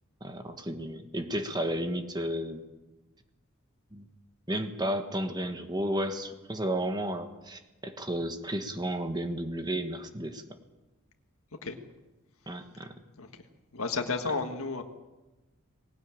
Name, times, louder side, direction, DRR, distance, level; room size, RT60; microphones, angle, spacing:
voice 1, 0.2-2.6 3.9-4.0 4.5-10.4 12.5-12.9, right 1 dB, 20° right, 7 dB, 1.5 m, -33 dB
voice 2, 13.7-14.8, left 4 dB, 85° left, 5 dB, 1.6 m, -32 dB
20.0 x 18.5 x 8.8 m, 1.1 s
head